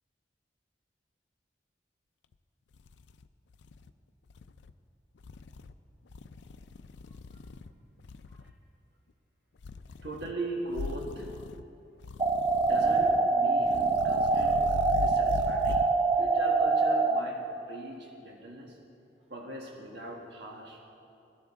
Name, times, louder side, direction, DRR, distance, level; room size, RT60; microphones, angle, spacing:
sound 1, 2.3-2.4 2.7-3.9 4.3-4.7 5.2-5.7 6.1-7.7 8.0-8.5 9.6-10.3 10.7-11.6 12.0-13.2 13.6-15.9, left 3 dB, 75° left, 0.4 m, -40 dB
voice 1, 10.0-11.3 12.6-14.6 14.9-15.8 16.1-17.4 17.7-18.8 19.3-20.8, right 1 dB, 70° right, -1 dB, 1.5 m, -40 dB
sound 2, 12.2-17.2, right 3 dB, 25° right, 0.4 m, -25 dB
16.5 x 12.5 x 3.6 m, 2.6 s
head